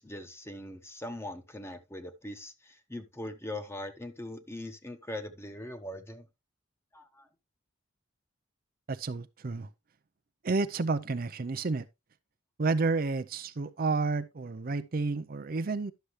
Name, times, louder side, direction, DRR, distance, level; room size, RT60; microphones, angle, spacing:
voice 1, 0.0-6.3 6.9-7.3, left 1 dB, 15° left, 1.1 m, -41 dB
voice 2, 8.9-9.7 10.4-11.9 12.6-15.9, right 3 dB, 50° right, 0.5 m, -30 dB
11.5 x 6.7 x 3.1 m
head